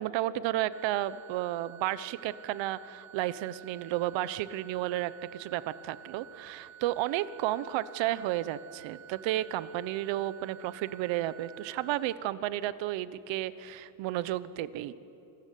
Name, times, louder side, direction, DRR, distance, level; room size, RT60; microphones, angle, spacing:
voice 1, 0.0-14.9, right 14 dB, 80° right, 16 dB, 1.1 m, -32 dB
sound 1, 0.7-12.1, right 11 dB, 50° right, 2.7 m, -51 dB
27.5 x 20.5 x 9.4 m, 2.9 s
cardioid pair, 145°, 45 cm